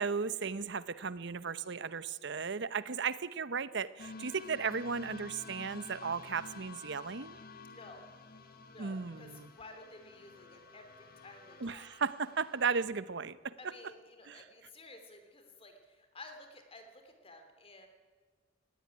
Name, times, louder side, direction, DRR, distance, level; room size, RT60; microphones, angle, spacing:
voice 1, 0.0-7.4 8.8-9.5 11.6-13.8 14.3-14.4, right 5 dB, 65° right, 16 dB, 0.8 m, -35 dB
sound 1, 4.0-12.7, left 3 dB, 50° left, 1.6 m, -51 dB
voice 2, 7.7-8.0 8.7-11.9 13.6-17.9, left 2 dB, 30° left, 6 dB, 3.0 m, -53 dB
19.0 x 16.5 x 9.8 m, 1.5 s
head